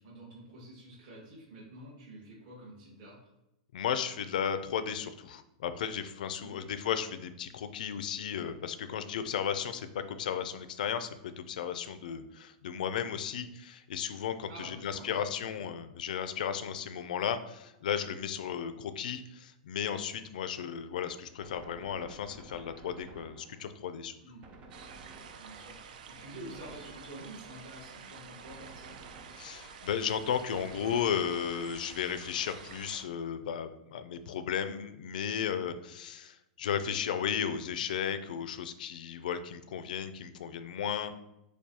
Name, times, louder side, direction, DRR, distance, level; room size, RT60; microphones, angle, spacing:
voice 1, 0.0-3.3 6.4-6.7 14.5-15.6 24.2-24.4 25.4-29.0 35.6-35.7, right 1 dB, 45° right, -6 dB, 1.5 m, -49 dB
voice 2, 3.7-11.1 11.4-24.1 29.4-41.1, left 8 dB, 75° left, 10 dB, 0.4 m, -34 dB
Gunshot gunfire, 21.4-23.9 24.4-25.8 26.5-27.6 28.5-29.8 30.6-31.8, right 2 dB, 25° right, 0.5 m, -53 dB
sound 1, 24.7-33.0, right 6 dB, 80° right, 0.5 m, -49 dB
6.8 x 2.3 x 2.8 m, 0.88 s
supercardioid pair, 160°, 4 cm